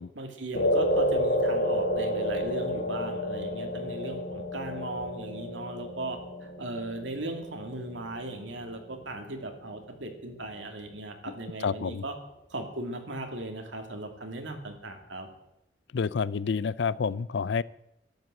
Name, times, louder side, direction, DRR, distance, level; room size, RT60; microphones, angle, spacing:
voice 1, 0.1-12.2 12.5-15.3, right 2 dB, 85° right, 4 dB, 2.6 m, -38 dB
sound 1, 0.5-9.0, equal, 85° left, 2.1 m, -30 dB
voice 2, 11.6-12.0 15.9-17.6, left 5 dB, 70° left, 20 dB, 0.4 m, -29 dB
12.0 x 11.0 x 7.7 m, 0.82 s
head